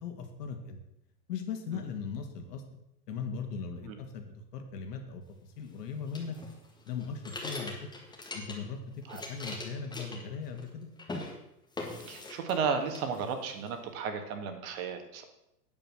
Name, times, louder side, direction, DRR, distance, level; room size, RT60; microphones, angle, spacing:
voice 1, 0.0-0.8 1.3-2.6 3.1-5.2 5.6-6.4 6.9-7.9 8.3-8.8 9.3-10.9, left 6 dB, 75° left, 5 dB, 2.3 m, -38 dB
sound 1, 6.1-8.8 9.0-10.7 11.0-11.3 11.8-12.6 12.9-13.7, left 2 dB, 10° left, 1.7 m, -41 dB
voice 2, 12.1-15.2, right 6 dB, 55° right, 6 dB, 1.9 m, -34 dB
9.1 x 7.7 x 6.2 m, 0.83 s
supercardioid pair, 150°, 49 cm